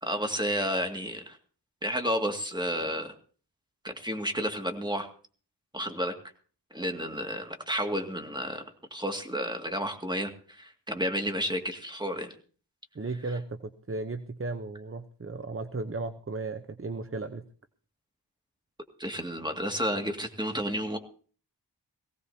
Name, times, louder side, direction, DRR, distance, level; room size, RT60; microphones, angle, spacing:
voice 1, 0.0-1.4 1.8-3.1 3.8-5.1 5.7-6.1 6.7-8.6 8.9-12.3 19.0-21.0, equal, 10° right, 4 dB, 2.2 m, -31 dB
voice 2, 12.9-17.4, right 3 dB, 30° right, 9 dB, 0.8 m, -35 dB
20.0 x 17.0 x 2.8 m, 0.42 s
wide cardioid pair, 45°, 42 cm